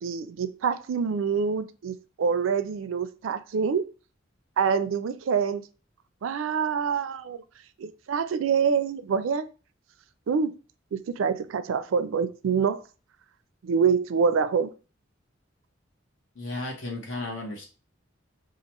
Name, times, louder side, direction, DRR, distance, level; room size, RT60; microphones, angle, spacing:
voice 1, 0.0-3.8 4.6-5.6 6.2-7.4 7.8-9.5 10.3-10.5 10.9-12.8 13.6-14.7, right 6 dB, 75° right, 0.4 m, -26 dB
voice 2, 16.3-17.7, left 2 dB, 70° left, 1.2 m, -34 dB
2.9 x 2.4 x 4.3 m
head